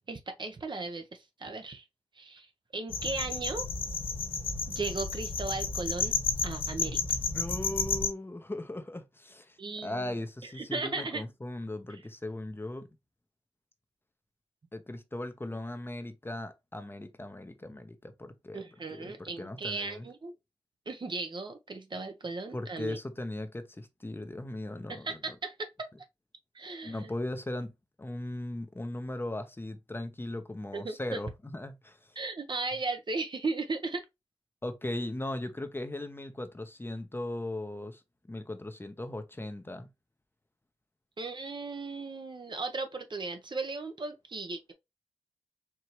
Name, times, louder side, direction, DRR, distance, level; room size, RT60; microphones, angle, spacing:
voice 1, 0.1-1.8 2.2-2.5 2.7-3.6 4.7-6.1 6.4-7.0 9.6-10.1 10.4-11.3 11.9-12.0 18.5-20.3 20.9-23.0 24.9-25.9 26.5-27.1 30.7-31.2 32.2-34.1 41.2-44.7, right 3 dB, 45° right, 0.9 m, -36 dB
sound 1, 2.9-8.1, left 5 dB, 55° left, 1.7 m, -32 dB
voice 2, 7.3-12.9 14.7-18.6 18.9-20.1 22.5-25.2 26.8-27.7 28.0-32.2 34.6-38.0 38.3-39.9, left 1 dB, 20° left, 0.8 m, -38 dB
4.6 x 2.8 x 3.0 m
cardioid pair, 50°, 11 cm